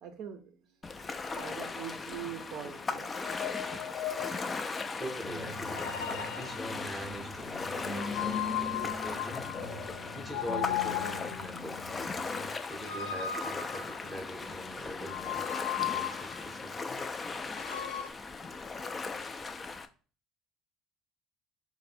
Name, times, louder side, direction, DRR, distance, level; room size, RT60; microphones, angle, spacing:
voice 1, 0.0-0.5 1.3-3.1, right 9 dB, 55° right, 7 dB, 0.5 m, -42 dB
Ocean, 0.8-19.9, left 4 dB, 20° left, 0.3 m, -38 dB
sound 1, 1.3-1.7 3.1-4.6 5.6-6.8 8.0-9.7 10.3-11.5 12.7-14.3 15.1-16.5 17.5-18.1, left 11 dB, 90° left, 0.5 m, -37 dB
voice 2, 5.0-5.8 6.4-9.5 10.1-11.8 12.6-17.0, equal, ahead, 3 dB, 0.7 m, -43 dB
sound 2, 5.2-12.5, left 3 dB, 40° left, 0.7 m, -42 dB
4.2 x 2.1 x 4.2 m, 0.37 s
cardioid pair, 155°, 0 cm